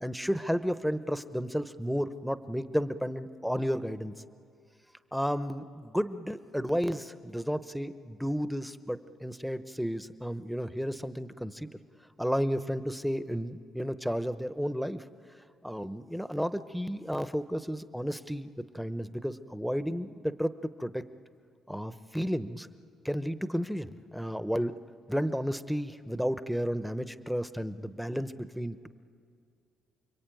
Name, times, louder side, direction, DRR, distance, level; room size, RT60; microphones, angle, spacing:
voice 1, 0.0-4.1 5.1-11.7 12.2-15.0 15.6-18.5 18.7-21.0 21.7-22.7 23.0-24.7 25.1-28.9, equal, ahead, 12 dB, 0.9 m, -32 dB
29.5 x 21.5 x 9.2 m, 2.3 s
cardioid pair, 90°, 0 cm